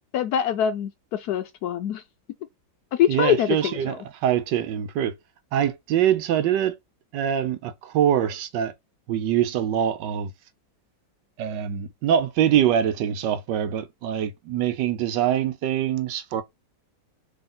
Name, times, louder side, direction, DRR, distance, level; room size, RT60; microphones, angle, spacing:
voice 1, 0.1-2.0 2.9-4.0, left 10 dB, 70° left, 0.9 m, -24 dB
voice 2, 3.1-4.0 4.2-5.1 5.5-6.8 7.1-8.7 9.1-10.3 11.4-16.4, right 10 dB, 80° right, 1.2 m, -24 dB
3.9 x 3.3 x 3.7 m
omnidirectional pair, 2.0 m